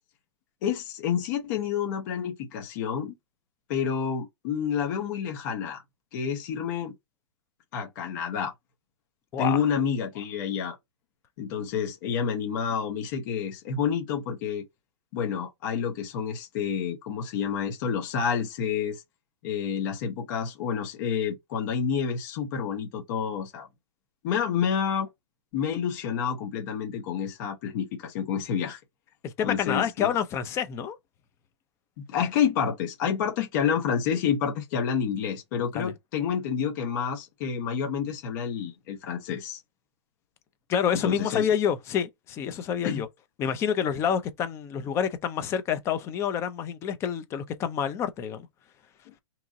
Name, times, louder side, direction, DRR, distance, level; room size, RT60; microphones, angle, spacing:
voice 1, 0.6-3.1 3.7-5.8 6.1-6.9 7.7-8.5 9.4-10.8 11.4-14.6 15.1-19.0 19.4-23.7 24.2-25.1 25.5-28.8 29.4-30.1 32.0-39.6 40.9-41.5 42.8-43.0 49.1-49.2, left 7 dB, 40° left, 0.9 m, -29 dB
voice 2, 29.2-31.0 35.7-35.9 40.7-43.1 43.4-48.5, left 8 dB, 20° left, 0.4 m, -28 dB
2.9 x 2.6 x 3.5 m
hypercardioid pair, 160°, 15 cm